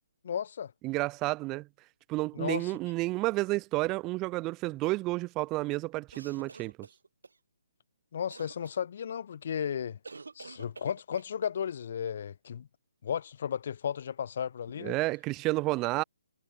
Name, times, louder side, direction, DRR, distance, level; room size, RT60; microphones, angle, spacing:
voice 1, 0.2-0.7 2.3-2.7 8.1-10.0 10.4-12.7 13.0-15.0, left 8 dB, 40° left, 1.7 m, -34 dB
voice 2, 0.8-1.7 2.1-6.9 14.8-16.0, right 21 dB, 15° right, 1.9 m, -31 dB
sound 1, 6.1-7.4 8.3-8.8 10.0-11.3, right 4 dB, 90° right, 4.0 m, -48 dB
hypercardioid pair, 170°, 0 cm